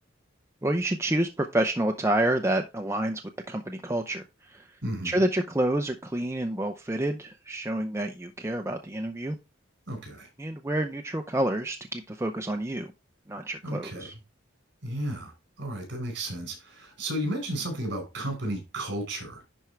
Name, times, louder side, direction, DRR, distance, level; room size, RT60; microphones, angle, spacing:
voice 1, 0.6-3.2 3.5-4.7 5.0-9.4 10.4-12.9 13.3-14.1, right 1 dB, 15° right, 0.6 m, -28 dB
voice 2, 4.8-5.2 9.9-10.3 13.6-14.1 14.8-15.3 15.6-19.4, right 1 dB, 60° right, 4.8 m, -33 dB
11.0 x 4.5 x 3.3 m
head